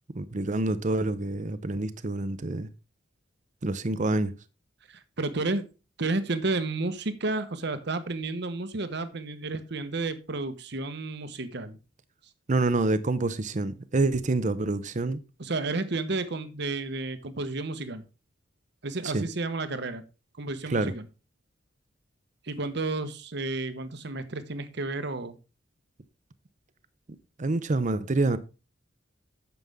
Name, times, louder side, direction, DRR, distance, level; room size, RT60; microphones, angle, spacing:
voice 1, 0.1-2.7 3.6-4.3 12.5-15.2 19.0-19.3 20.7-20.9 27.4-28.4, right 2 dB, 40° right, 0.7 m, -27 dB
voice 2, 4.9-5.7 6.0-11.8 15.4-18.0 18.8-20.0 20.4-21.0 22.4-25.4, right 3 dB, 65° right, 1.1 m, -31 dB
9.3 x 7.0 x 3.5 m
head